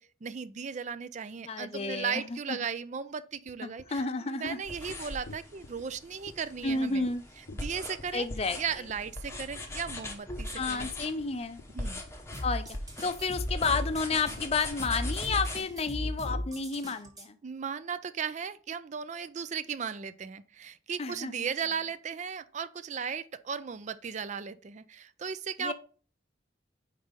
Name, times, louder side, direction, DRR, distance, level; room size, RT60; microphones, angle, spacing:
voice 1, 0.2-7.1 7.6-8.3 8.6-10.9 11.7-12.0 17.4-25.7, right 6 dB, 40° right, 0.4 m, -36 dB
voice 2, 1.5-2.6 3.6-4.6 6.6-7.2 8.1-8.6 10.5-11.6 12.4-12.6 13.0-17.4 21.0-21.3 25.6-25.7, left 4 dB, 35° left, 0.5 m, -31 dB
sound 1, 3.5-3.6 3.8-4.0 4.5-4.6 4.9-5.0 5.3-5.8 6.3-6.4 6.7-6.8 7.1-7.2 7.5-8.0 8.4-8.6 8.9-9.1 9.4-9.6 9.9-10.1 10.4-16.4, left 2 dB, 75° left, 0.6 m, -47 dB
sound 2, 4.6-15.6, left 1 dB, 15° left, 0.8 m, -41 dB
sound 3, 12.3-17.3, left 1 dB, 20° right, 1.2 m, -36 dB
5.2 x 4.1 x 5.1 m
head